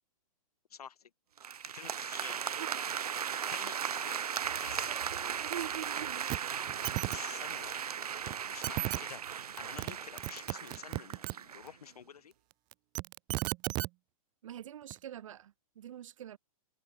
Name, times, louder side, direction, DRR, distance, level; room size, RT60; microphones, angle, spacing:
voice 1, 0.7-1.1 1.7-2.4 3.5-5.2 7.0-7.8 8.4-12.3, left 8 dB, 90° left, 4.0 m, -49 dB
sound 1, 1.4-11.7, right 8 dB, 90° right, 4.0 m, -37 dB
voice 2, 2.6-2.9 5.4-6.6 14.4-16.4, right 11 dB, 60° right, 2.3 m, -44 dB
sound 2, 6.3-6.4 6.7-7.2 8.3-8.4 8.6-9.0 9.6-9.9 10.2-11.3 12.7-13.9 14.9-15.0, right 24 dB, 20° right, 1.0 m, -34 dB
hypercardioid pair, 165°, 19 cm